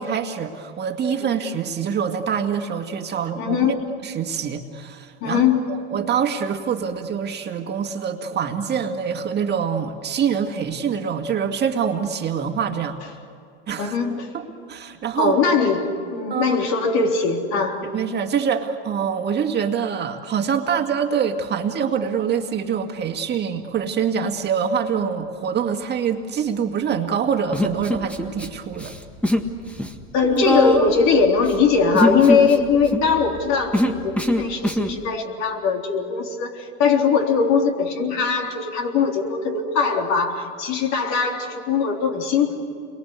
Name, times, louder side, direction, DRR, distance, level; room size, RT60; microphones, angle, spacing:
voice 1, 0.0-3.7 4.0-5.4 5.7-13.0 13.7-14.0 14.3-15.4 16.3-16.6 17.8-28.9, right 7 dB, 30° right, 4 dB, 2.1 m, -25 dB
voice 2, 3.4-3.8 5.2-5.7 13.8-14.3 15.2-17.9 30.1-42.6, left 5 dB, 55° left, 2 dB, 3.7 m, -21 dB
Human voice, 27.5-28.5 28.8-29.5 29.8-35.0, left 1 dB, 5° left, 1.7 m, -22 dB
29.0 x 23.0 x 8.3 m, 2.3 s
supercardioid pair, 120°, 33 cm